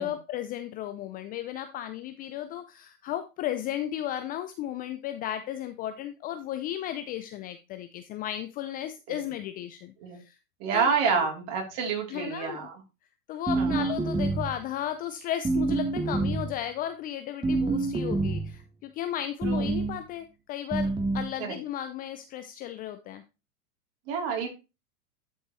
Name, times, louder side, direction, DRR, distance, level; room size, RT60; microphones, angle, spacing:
voice 1, 0.0-10.4 10.7-11.3 12.1-12.6 13.3-23.2, left 11 dB, 20° left, 9 dB, 0.4 m, -35 dB
voice 2, 10.6-12.8 13.6-13.9 19.4-19.7 21.4-21.6 24.1-24.5, right 6 dB, 50° right, 2 dB, 3.4 m, -29 dB
sound 1, 13.5-14.6 15.4-16.6 17.4-18.5 19.4-20.0 20.7-21.3, right 3 dB, 10° right, 1.3 m, -27 dB
11.5 x 5.2 x 3.1 m, 0.28 s
hypercardioid pair, 105°, 45 cm